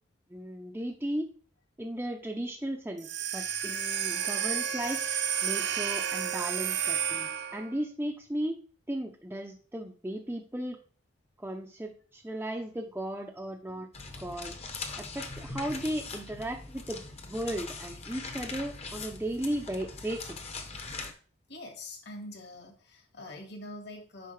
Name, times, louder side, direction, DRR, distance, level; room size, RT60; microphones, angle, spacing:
voice 1, 0.3-1.3 1.8-5.0 5.4-8.6 8.9-10.8 11.4-13.9 14.2-14.5 15.0-20.4, right 1 dB, 10° right, 1 dB, 0.5 m, -36 dB
sound 1, 3.0-7.8, right 9 dB, 55° right, 0.6 m, -31 dB
sound 2, 13.9-21.1, left 4 dB, 30° left, 0.8 m, -41 dB
voice 2, 21.5-24.3, left 1 dB, 55° left, 4 dB, 1.7 m, -44 dB
9.2 x 5.6 x 3.2 m, 0.42 s
head